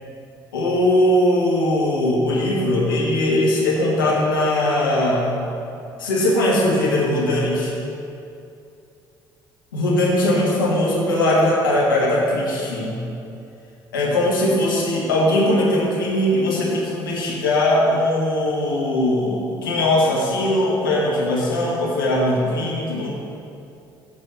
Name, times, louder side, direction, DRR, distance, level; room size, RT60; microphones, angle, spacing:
voice 1, 0.5-5.4 6.0-7.7 9.7-13.0 13.9-23.1, left 1 dB, 90° left, -4 dB, 1.6 m, -20 dB
9.9 x 4.4 x 6.3 m, 2.6 s
hypercardioid pair, 50°, 11 cm